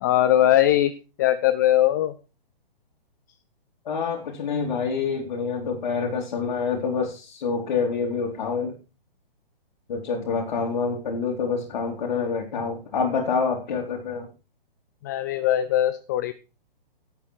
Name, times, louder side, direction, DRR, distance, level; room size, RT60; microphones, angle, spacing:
voice 1, 0.0-0.9 1.2-2.1 15.0-16.3, left 12 dB, 20° left, 13 dB, 0.5 m, -20 dB
voice 2, 3.9-8.7 9.9-14.3, left 5 dB, 45° left, -1 dB, 3.5 m, -27 dB
17.5 x 8.1 x 4.7 m, 0.32 s
figure-of-eight pair, 125°, 29 cm